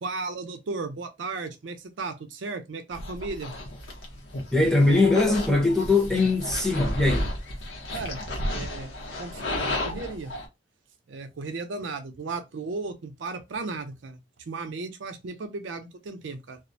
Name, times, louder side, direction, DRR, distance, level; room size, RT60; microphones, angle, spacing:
voice 1, 0.0-3.5 7.9-8.2 8.5-8.9 9.2-10.3 11.1-14.2 14.5-16.6, right 3 dB, 90° right, 0.5 m, -35 dB
sound 1, 2.9-10.5, left 1 dB, 85° left, 0.8 m, -33 dB
voice 2, 4.5-7.3, left 2 dB, 5° left, 0.7 m, -21 dB
2.4 x 2.1 x 2.6 m
head